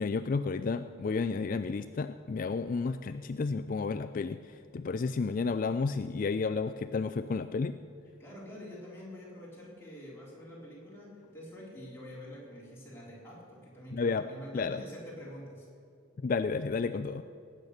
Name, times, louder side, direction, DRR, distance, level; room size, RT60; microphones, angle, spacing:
voice 1, 0.0-7.8 13.9-14.3 14.5-14.8 16.2-17.2, left 4 dB, 40° left, 10 dB, 0.3 m, -31 dB
voice 2, 8.2-15.7, equal, 10° left, -5 dB, 3.7 m, -46 dB
18.5 x 8.7 x 6.5 m, 2.5 s
head